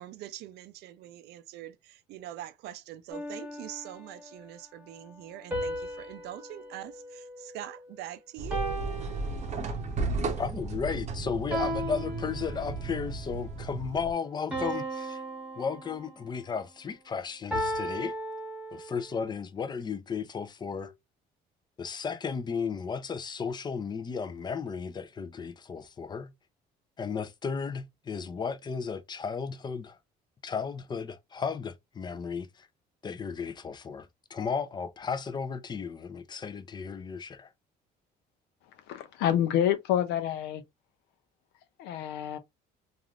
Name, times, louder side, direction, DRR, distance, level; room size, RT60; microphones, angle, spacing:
voice 1, 0.0-8.8 9.7-10.3, right 13 dB, 80° right, 0.5 m, -43 dB
sound 1, 3.1-4.3 5.5-7.9 8.5-10.0 11.5-13.0 14.5-16.4 17.5-19.1, right 1 dB, 10° right, 1.2 m, -36 dB
sound 2, 8.4-14.1, right 3 dB, 40° right, 0.7 m, -34 dB
voice 2, 10.4-15.2 15.6-18.1 18.7-20.9 21.8-26.3 27.0-30.0 30.4-32.7 33.0-37.5, left 6 dB, 25° left, 0.5 m, -34 dB
voice 3, 38.9-40.6 41.8-42.4, left 10 dB, 90° left, 0.5 m, -27 dB
3.3 x 2.5 x 2.3 m
cardioid pair, 110°, 17 cm